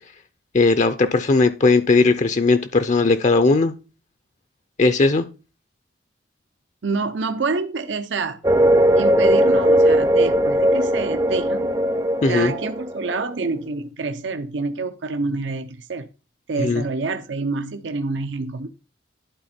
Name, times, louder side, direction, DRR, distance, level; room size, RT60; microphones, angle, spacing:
voice 1, 0.5-3.7 4.8-5.3 12.2-12.5 16.6-16.8, left 3 dB, 40° left, 0.5 m, -18 dB
voice 2, 6.8-8.4 9.0-11.8 12.3-16.1 16.5-18.7, right 3 dB, 70° right, 0.7 m, -27 dB
sound 1, 8.4-13.2, equal, 20° right, 0.5 m, -18 dB
11.5 x 4.3 x 4.3 m
head